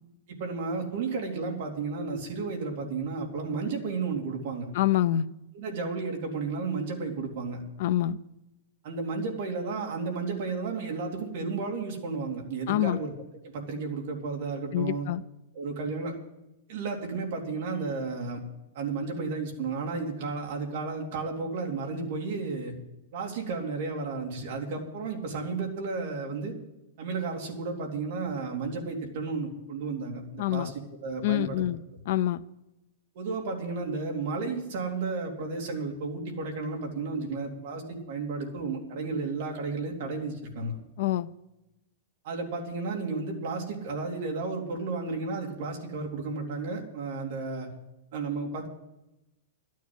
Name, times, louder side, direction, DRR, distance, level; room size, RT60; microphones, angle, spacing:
voice 1, 0.3-4.7 5.5-7.6 8.8-13.1 13.4-15.1 15.5-16.1 16.7-18.4 18.7-22.7 23.1-26.5 27.0-31.6 33.1-40.8 42.2-47.7 48.1-48.7, right 4 dB, 45° right, 1 dB, 3.0 m, -33 dB
voice 2, 4.7-5.3 7.8-8.2 12.7-13.0 14.7-15.2 30.4-30.7 31.2-31.8 32.1-32.4 41.0-41.3, left 13 dB, 45° left, 12 dB, 0.5 m, -26 dB
12.5 x 9.4 x 7.9 m, 0.93 s
supercardioid pair, 180°, 0 cm